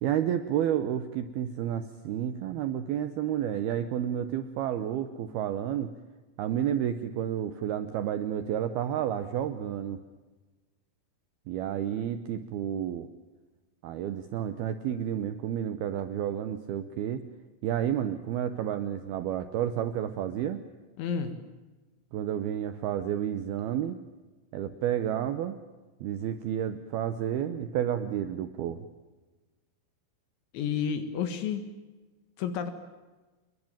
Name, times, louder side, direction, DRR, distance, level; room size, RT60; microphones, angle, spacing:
voice 1, 0.0-5.9 6.4-10.0 11.5-13.1 13.8-17.2 17.6-20.6 22.1-24.0 24.5-25.6 26.0-28.9, right 10 dB, 85° right, 11 dB, 2.2 m, -30 dB
voice 2, 21.0-21.3 30.5-31.7 32.4-32.7, left 7 dB, 70° left, 9 dB, 3.8 m, -30 dB
29.0 x 21.5 x 9.0 m, 1.2 s
omnidirectional pair, 6.0 m